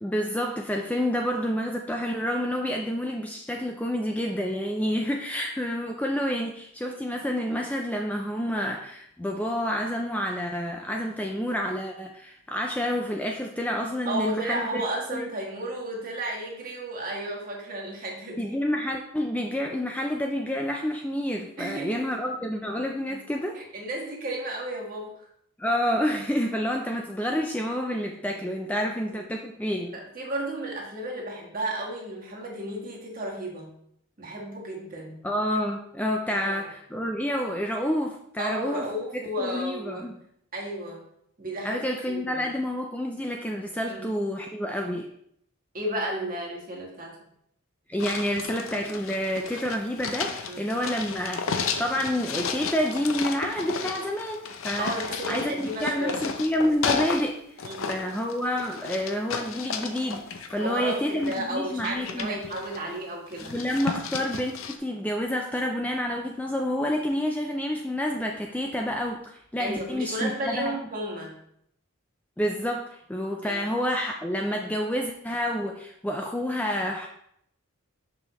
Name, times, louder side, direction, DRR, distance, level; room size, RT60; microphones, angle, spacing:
voice 1, 0.0-14.8 15.1-15.3 18.4-23.6 25.6-30.0 35.2-38.9 39.4-40.1 41.6-45.1 47.9-54.9 55.3-57.4 57.9-62.4 63.4-70.7 72.4-77.1, equal, 5° left, 1 dB, 0.3 m, -29 dB
voice 2, 14.0-18.6 21.6-22.1 23.1-23.2 23.5-25.3 29.1-29.2 29.9-33.7 34.2-35.2 36.3-36.7 36.9-37.0 38.4-40.1 40.5-41.0 41.4-41.8 42.1-42.4 43.9-44.1 45.7-47.3 50.5-50.7 54.8-56.2 57.6-57.9 60.6-63.6 69.6-71.4 73.4-73.6, right 1 dB, 40° right, -2 dB, 1.4 m, -33 dB
sound 1, 48.0-57.3 57.6-61.4 61.8-63.0 63.3-64.8, left 5 dB, 70° left, 0.6 m, -33 dB
6.2 x 5.4 x 3.0 m, 0.72 s
head